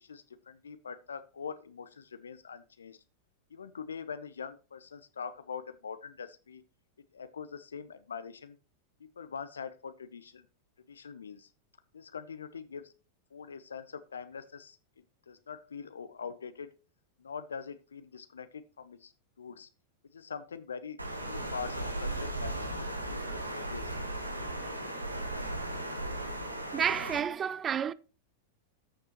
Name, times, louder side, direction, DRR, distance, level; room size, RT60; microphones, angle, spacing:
voice 1, 0.0-3.0 3.5-6.6 7.1-8.6 9.2-10.4 10.9-11.5 11.9-12.9 13.3-14.8 15.3-16.7 17.2-19.1 19.4-19.7 20.1-21.0 21.3-23.2 23.5-23.9, left 6 dB, 70° left, 0.6 m, -43 dB
Water, 21.0-27.2, right 1 dB, 85° right, 1.3 m, -36 dB
voice 2, 24.6-25.1 26.7-27.9, right 8 dB, 25° right, 0.5 m, -31 dB
14.0 x 6.7 x 2.9 m
figure-of-eight pair, 90°, 0 cm